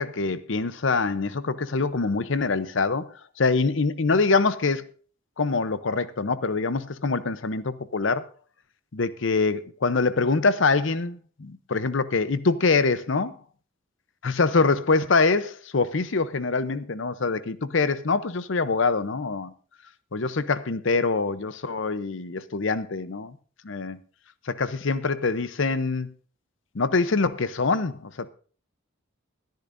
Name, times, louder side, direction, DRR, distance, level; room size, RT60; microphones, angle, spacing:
voice 1, 0.0-4.9 5.4-8.2 8.9-13.4 14.4-19.5 20.1-23.4 23.6-24.0 24.4-26.1 26.7-28.3, left 4 dB, 65° left, 0.7 m, -24 dB
21.5 x 10.5 x 2.6 m
head